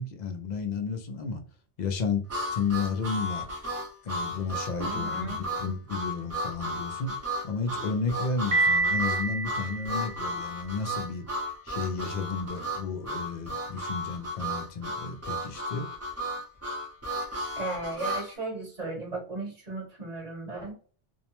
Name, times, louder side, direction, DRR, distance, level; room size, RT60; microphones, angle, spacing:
voice 1, 0.0-1.4 1.8-3.5 4.0-7.2 7.4-15.9, left 5 dB, 55° left, 0.5 m, -32 dB
Harmonica, 2.3-18.3, equal, 15° right, 0.6 m, -34 dB
voice 2, 4.8-5.4 17.6-20.8, right 3 dB, 40° right, 1.1 m, -36 dB
Piano, 8.5-10.5, right 3 dB, 80° right, 1.0 m, -27 dB
2.6 x 2.1 x 2.9 m
omnidirectional pair, 1.1 m